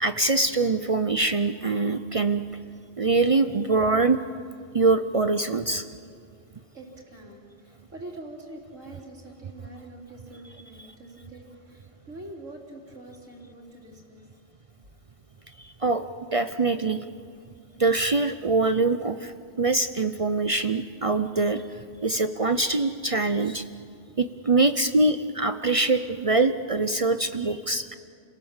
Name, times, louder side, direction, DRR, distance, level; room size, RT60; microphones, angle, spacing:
voice 1, 0.0-2.4 3.0-4.2 4.7-5.8 15.6-16.0 16.3-17.0 17.8-21.6 22.0-23.6 24.2-27.9, right 3 dB, 40° right, 10 dB, 0.5 m, -23 dB
voice 2, 6.7-14.2, right 1 dB, 80° right, 0 dB, 3.6 m, -44 dB
30.0 x 18.0 x 7.3 m, 2.3 s
omnidirectional pair, 1.3 m